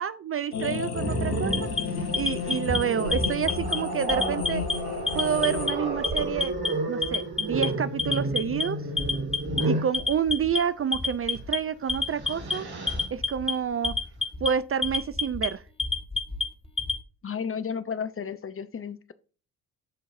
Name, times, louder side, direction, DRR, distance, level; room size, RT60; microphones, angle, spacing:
voice 1, 0.0-4.6 5.1-6.5 6.9-8.8 9.6-12.7 13.1-13.9 14.4-15.6, right 8 dB, 30° right, 0.5 m, -29 dB
sound 1, 0.5-5.7, left 6 dB, 85° left, 0.9 m, -33 dB
Growling, 0.9-10.0 11.3-11.5 11.9-13.1, right 2 dB, 55° right, 2.7 m, -31 dB
Alarm, 1.5-2.8 3.1-3.8 4.1-4.7 5.1-5.7 6.0-6.7 7.0-7.7 8.0-8.6 9.0-9.6 9.9-10.6 10.9-11.6 11.9-12.5 12.9-13.5 13.8-14.5 14.8-15.5 15.8-17.0, left 3 dB, 15° left, 1.4 m, -27 dB
voice 2, 17.2-19.1, left 6 dB, 30° left, 0.7 m, -33 dB
13.0 x 4.6 x 2.6 m
hypercardioid pair, 45°, 45 cm